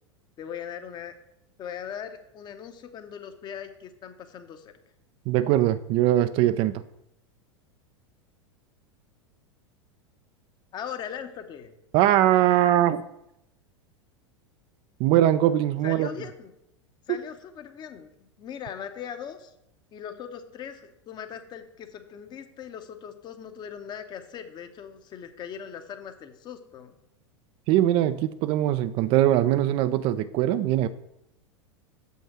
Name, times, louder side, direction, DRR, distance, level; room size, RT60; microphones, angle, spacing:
voice 1, 0.4-1.1 1.6-4.7 10.7-11.7 15.8-16.5 17.1-19.5 19.9-26.9, left 8 dB, 30° left, 9 dB, 0.8 m, -40 dB
voice 2, 5.3-6.8 11.9-13.0 15.0-16.1 27.7-30.9, right 13 dB, 35° right, 13 dB, 0.4 m, -21 dB
7.1 x 5.6 x 5.9 m, 0.81 s
figure-of-eight pair, 85°, 15 cm